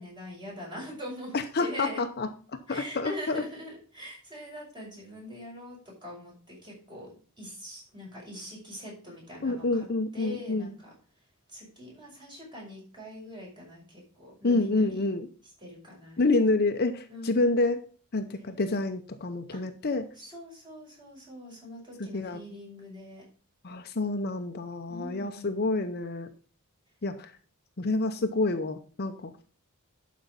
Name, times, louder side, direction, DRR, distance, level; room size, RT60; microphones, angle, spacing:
voice 1, 0.0-2.0 2.7-9.8 10.1-10.9 11.5-15.0 15.6-16.2 17.1-17.5 19.5-19.6 20.2-23.2 24.9-25.6, equal, 20° right, -4 dB, 6.0 m, -43 dB
voice 2, 1.3-2.3 2.7-3.4 9.4-10.7 14.4-15.3 16.2-17.8 18.1-20.1 22.0-22.4 23.6-26.3 27.0-27.3 27.8-29.3, left 2 dB, 45° left, 7 dB, 0.7 m, -28 dB
11.5 x 5.2 x 5.3 m, 0.40 s
head